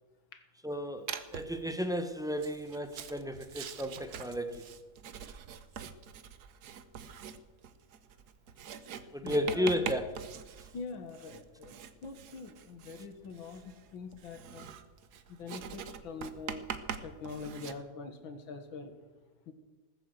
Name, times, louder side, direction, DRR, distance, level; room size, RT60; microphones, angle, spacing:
voice 1, 0.6-4.7 9.1-10.2, equal, 5° right, 7 dB, 0.5 m, -33 dB
Writing, 1.1-1.6 2.3-17.7, right 8 dB, 60° right, 1.3 m, -44 dB
voice 2, 8.9-9.6 10.7-14.7 15.3-16.7 17.0-18.9 19.5-19.6, left 4 dB, 80° left, 8 dB, 2.3 m, -44 dB
19.0 x 7.9 x 8.0 m, 1.2 s
omnidirectional pair, 2.1 m